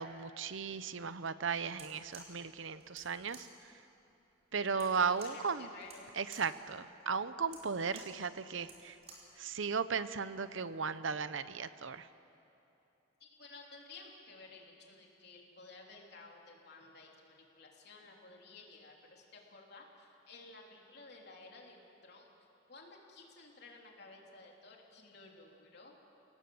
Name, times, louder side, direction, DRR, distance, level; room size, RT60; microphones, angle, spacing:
voice 1, 0.0-3.5 4.5-5.7 6.2-9.0 9.4-12.1, right 5 dB, 70° right, 13 dB, 0.8 m, -36 dB
sound 1, 1.6-9.4, right 3 dB, 30° right, 4.4 m, -56 dB
voice 2, 4.7-6.1 13.2-22.3 22.7-26.0, left 3 dB, 55° left, 0 dB, 3.4 m, -54 dB
29.0 x 18.5 x 7.9 m, 2.9 s
head